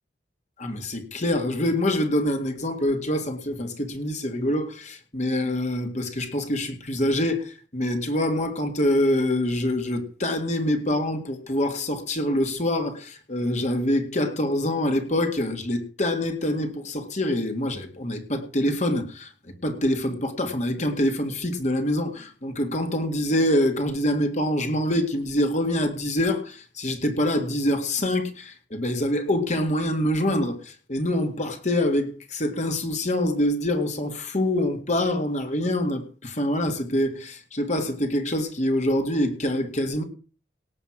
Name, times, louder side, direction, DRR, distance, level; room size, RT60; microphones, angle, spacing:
voice 1, 0.6-19.3 19.6-40.0, left 1 dB, 40° left, 6 dB, 2.0 m, -25 dB
18.0 x 6.9 x 6.0 m, 0.38 s
head